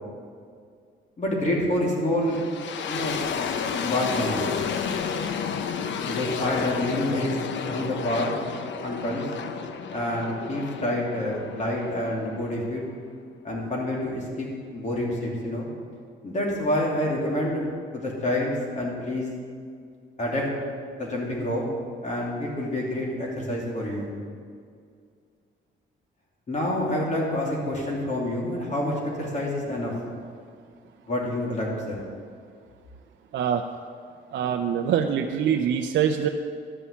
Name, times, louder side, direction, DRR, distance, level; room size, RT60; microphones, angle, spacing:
voice 1, 1.2-2.4 2.9-3.5 3.8-4.5 6.1-7.4 7.6-8.3 8.8-9.3 9.9-12.8 13.4-14.5 14.7-15.7 16.2-17.7 17.9-19.3 20.2-20.5 21.0-21.6 22.0-24.1 26.5-29.9 31.1-32.0, left 1 dB, 35° left, -3 dB, 3.1 m, -27 dB
sound 1, 2.2-13.1, left 6 dB, 70° left, 0.8 m, -32 dB
voice 2, 34.3-36.3, right 8 dB, 65° right, 4 dB, 0.6 m, -24 dB
12.5 x 5.6 x 8.5 m, 2.2 s
cardioid pair, 90°, 20 cm